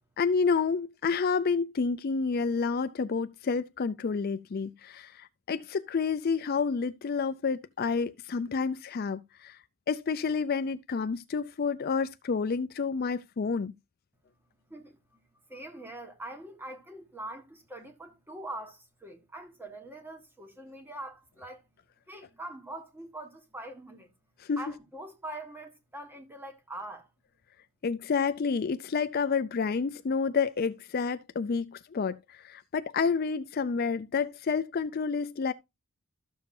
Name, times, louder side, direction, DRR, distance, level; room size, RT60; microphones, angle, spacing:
voice 1, 0.2-9.6 9.9-13.7 24.5-24.6 27.8-32.2 32.4-35.5, left 5 dB, 40° left, 0.4 m, -29 dB
voice 2, 14.7-21.7 22.1-24.1 24.6-27.1, right 1 dB, 10° right, 1.5 m, -43 dB
13.0 x 7.0 x 2.6 m
head